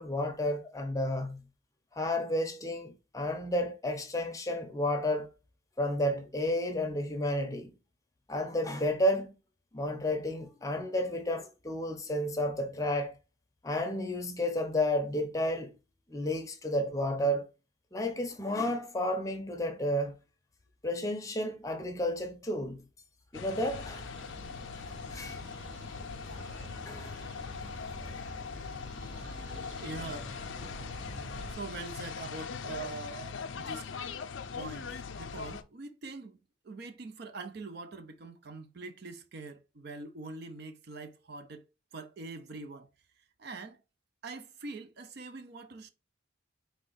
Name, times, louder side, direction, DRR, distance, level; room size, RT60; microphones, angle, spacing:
voice 1, 0.0-1.5 1.9-5.3 5.8-7.7 8.3-9.3 9.7-13.2 13.6-15.8 16.1-17.5 17.9-20.2 20.8-22.9 23.3-24.1 25.1-25.4 26.9-27.2 29.5-29.7, left 1 dB, 15° left, 0.6 m, -31 dB
sound 1, 23.3-35.6, left 5 dB, 65° left, 0.4 m, -41 dB
sound 2, 23.7-31.5, equal, 65° right, 1.1 m, -46 dB
voice 2, 29.8-30.3 31.5-33.9 34.5-36.4 36.6-42.9 43.4-43.8 44.2-45.9, right 3 dB, 50° right, 0.4 m, -43 dB
4.2 x 2.9 x 3.8 m
head